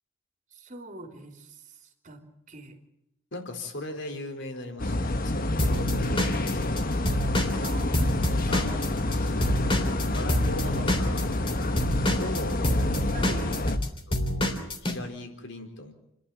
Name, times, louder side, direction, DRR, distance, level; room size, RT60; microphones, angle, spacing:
voice 1, 0.5-1.6 2.0-2.8 7.6-9.1 13.1-13.5, right 1 dB, 40° right, 4 dB, 3.4 m, -44 dB
voice 2, 3.3-6.9 8.5-8.8 9.1-9.4 10.1-12.6 14.1-14.6 14.8-15.9, left 1 dB, 60° left, 5 dB, 4.3 m, -38 dB
sound 1, 4.8-13.8, left 1 dB, 45° left, 1.4 m, -28 dB
Drum kit / Drum, 5.6-9.2 9.4-15.0, left 1 dB, 25° left, 3.4 m, -27 dB
30.0 x 12.0 x 9.3 m, 0.85 s
head